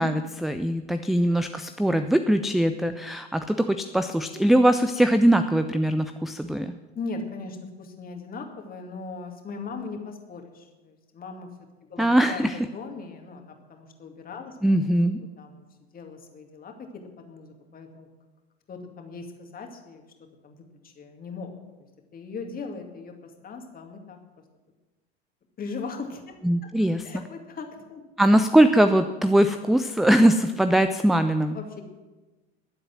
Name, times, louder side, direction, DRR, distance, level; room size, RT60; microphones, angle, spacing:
voice 1, 0.0-6.7 12.0-12.6 14.6-15.2 26.4-27.0 28.2-31.6, right 1 dB, ahead, 9 dB, 0.4 m, -21 dB
voice 2, 6.9-11.5 11.8-15.0 15.4-15.6 15.9-18.1 18.7-20.1 20.4-20.6 20.8-21.5 22.1-24.2 25.6-26.4 26.6-26.7 27.0-28.0 31.5-31.8, left 4 dB, 25° left, 4 dB, 2.4 m, -39 dB
21.5 x 7.8 x 6.1 m, 1.2 s
figure-of-eight pair, 75°, 33 cm